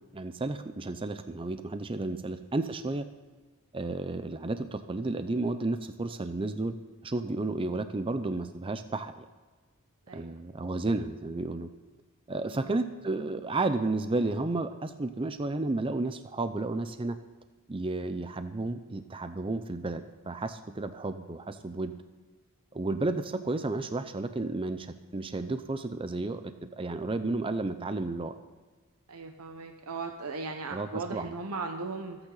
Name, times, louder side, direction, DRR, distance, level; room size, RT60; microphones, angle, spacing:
voice 1, 0.1-3.0 3.7-6.8 7.0-9.3 10.1-11.7 12.3-17.2 17.7-21.9 22.7-28.3 30.7-31.3, right 2 dB, 25° right, 9 dB, 0.5 m, -32 dB
voice 2, 12.5-12.8 29.1-32.2, right 3 dB, 90° right, 5 dB, 1.0 m, -38 dB
25.0 x 9.0 x 4.0 m, 1.3 s
head